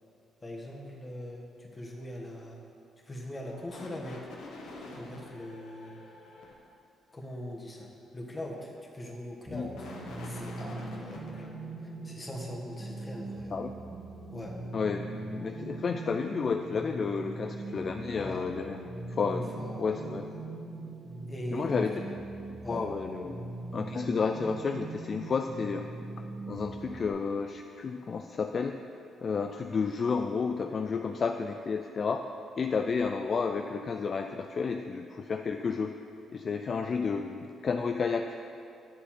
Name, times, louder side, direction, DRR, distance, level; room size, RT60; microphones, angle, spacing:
voice 1, 0.4-2.6 3.0-4.3 4.8-6.0 7.1-11.5 11.8-13.5 14.3-14.6 18.1-18.5 19.3-20.4 21.3-22.2 22.6-22.9, left 1 dB, 20° left, -1 dB, 1.5 m, -41 dB
sound 1, 3.4-6.5 9.3-11.5, left 2 dB, 85° left, 1.3 m, -46 dB
sound 2, 9.5-27.1, right 2 dB, 30° right, 1.6 m, -41 dB
voice 2, 14.7-18.8 19.1-19.5 19.8-20.3 21.5-21.9 22.7-23.4 23.7-25.9 26.5-28.8 29.2-32.2 32.6-35.9 36.3-38.3, left 5 dB, 45° left, 5 dB, 0.3 m, -31 dB
9.4 x 6.9 x 4.4 m, 2.5 s
cardioid pair, 90°, 0 cm